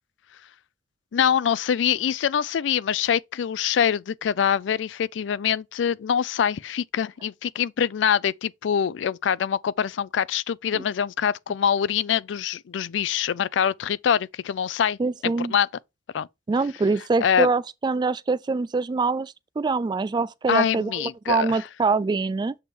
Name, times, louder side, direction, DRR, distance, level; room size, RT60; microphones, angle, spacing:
voice 1, 1.1-15.7 16.1-16.3 17.2-17.5 20.5-21.6, left 8 dB, 85° left, 0.4 m, -24 dB
voice 2, 15.0-15.5 16.5-22.5, right 4 dB, 25° right, 0.3 m, -24 dB
7.4 x 3.6 x 4.3 m
head